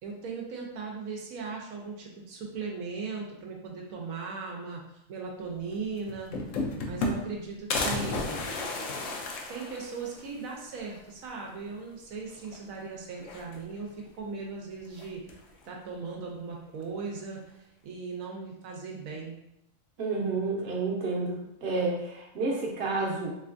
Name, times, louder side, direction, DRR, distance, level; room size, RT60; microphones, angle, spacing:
voice 1, 0.0-6.3 6.7-8.4 9.5-15.2 15.6-19.4, right 4 dB, 85° right, 0 dB, 1.0 m, -38 dB
sound 1, 5.7-5.8 6.1-7.4 7.7-10.3 10.7-10.8 11.1-11.2 12.3-12.8 13.2-13.9 14.9-15.5, left 2 dB, 75° left, 0.9 m, -33 dB
voice 2, 20.0-23.3, right 3 dB, 55° right, -2 dB, 1.0 m, -30 dB
3.3 x 3.0 x 2.5 m, 0.83 s
omnidirectional pair, 1.4 m